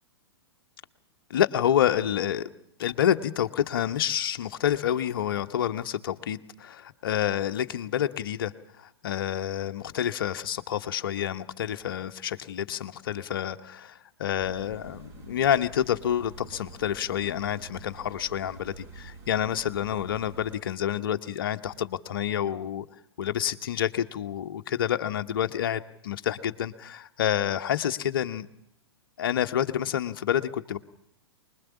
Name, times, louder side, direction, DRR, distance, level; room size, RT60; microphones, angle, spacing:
voice 1, 1.3-2.5 2.8-22.9 23.2-28.5 29.2-30.8, left 10 dB, 55° left, 10 dB, 1.2 m, -28 dB
sound 1, 14.4-20.6, right 3 dB, 25° right, 4.7 m, -47 dB
25.0 x 21.0 x 7.2 m, 0.72 s
figure-of-eight pair, 110°, 14 cm